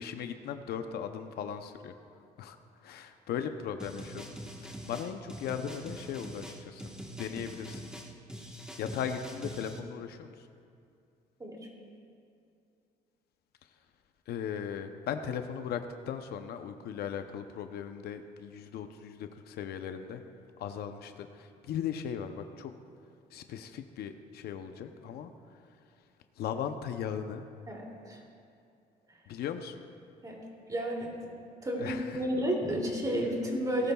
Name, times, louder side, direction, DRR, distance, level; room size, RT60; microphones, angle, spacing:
voice 1, 0.0-1.9 2.4-2.6 2.8-4.2 4.6-6.8 7.2-7.8 8.8-10.5 14.3-20.2 20.6-22.7 23.3-25.6 26.4-27.4 29.3-29.8 31.8-32.3, left 8 dB, 70° left, 7 dB, 0.7 m, -38 dB
sound 1, 3.8-9.8, equal, 5° right, 1.3 m, -44 dB
voice 2, 27.7-28.2 30.2-30.4 30.7-31.3 31.6-33.9, equal, 20° right, -1 dB, 2.7 m, -32 dB
18.5 x 12.5 x 2.3 m, 2.5 s
cardioid pair, 110°, 17 cm